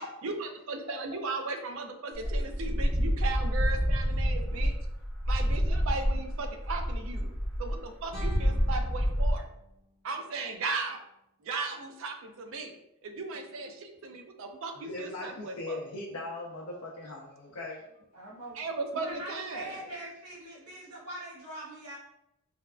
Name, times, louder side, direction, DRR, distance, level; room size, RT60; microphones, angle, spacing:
voice 1, 0.2-4.7 5.3-7.3 7.6-9.5 10.0-11.0 11.4-12.7 13.0-15.8 18.6-19.8, right 3 dB, 60° right, 5 dB, 0.4 m, -36 dB
sound 1, 2.1-9.4, equal, 5° right, 0.5 m, -28 dB
sound 2, 8.1-11.1, equal, 40° right, 0.8 m, -51 dB
voice 2, 14.8-17.8, left 2 dB, 70° left, -3 dB, 0.4 m, -39 dB
voice 3, 18.1-18.6 18.9-22.0, right 1 dB, 85° right, -7 dB, 1.0 m, -42 dB
3.3 x 2.1 x 2.3 m, 0.83 s
head